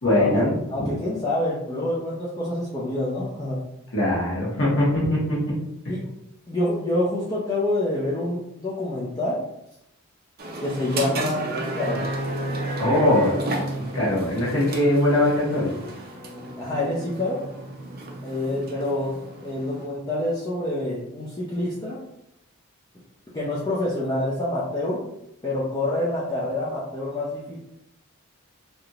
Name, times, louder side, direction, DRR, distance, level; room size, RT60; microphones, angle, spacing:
voice 1, 0.0-0.9 3.9-5.2 12.8-13.3 13.9-15.7, left 1 dB, 55° left, -6 dB, 1.3 m, -21 dB
voice 2, 0.7-3.7 5.9-6.0 6.5-9.4 10.6-12.1 13.0-13.5 16.6-17.4 18.2-22.0 23.3-25.0 25.4-27.6, left 1 dB, 20° left, -7 dB, 0.5 m, -27 dB
sound 1, 10.4-19.9, right 2 dB, 45° right, 0.5 m, -32 dB
3.4 x 2.7 x 2.4 m, 0.81 s
head